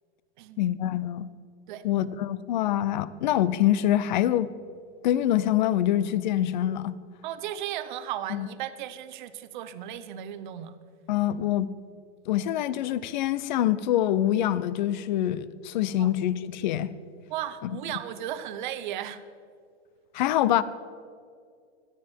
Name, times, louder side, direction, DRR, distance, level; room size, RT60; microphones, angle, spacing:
voice 1, 0.6-1.3 1.8-4.5 5.0-7.0 8.3-8.5 11.1-11.7 12.3-16.9 17.6-17.8 20.1-20.6, left 12 dB, 40° left, 0.6 m, -25 dB
voice 2, 7.2-10.7 16.0-16.1 17.3-19.2, right 11 dB, 45° right, 0.8 m, -35 dB
18.0 x 12.5 x 4.5 m
supercardioid pair, 165°, 35 cm